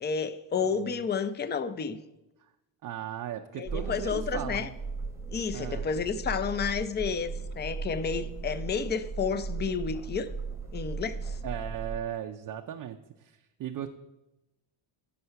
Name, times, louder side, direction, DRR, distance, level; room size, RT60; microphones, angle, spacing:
voice 1, 0.0-2.0 3.6-4.7 5.3-10.3 10.7-11.4, left 6 dB, 25° left, 0.5 m, -31 dB
voice 2, 0.6-0.9 2.4-2.5 2.8-4.7 5.5-5.9 11.4-13.9, right 10 dB, 45° right, 0.5 m, -37 dB
sound 1, 3.7-12.0, right 4 dB, 5° right, 1.0 m, -37 dB
9.4 x 5.6 x 5.7 m
cardioid pair, 95°, 47 cm